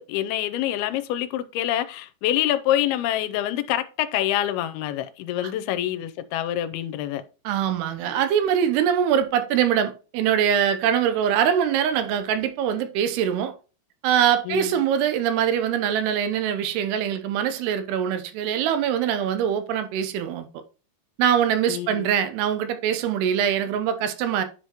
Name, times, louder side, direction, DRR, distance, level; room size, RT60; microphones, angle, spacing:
voice 1, 0.0-7.2 14.5-14.7 21.7-22.1, left 12 dB, 80° left, 2.5 m, -26 dB
voice 2, 7.5-13.5 14.0-20.5 21.2-24.4, right 9 dB, 90° right, 2.9 m, -23 dB
10.5 x 4.8 x 2.9 m
omnidirectional pair, 4.5 m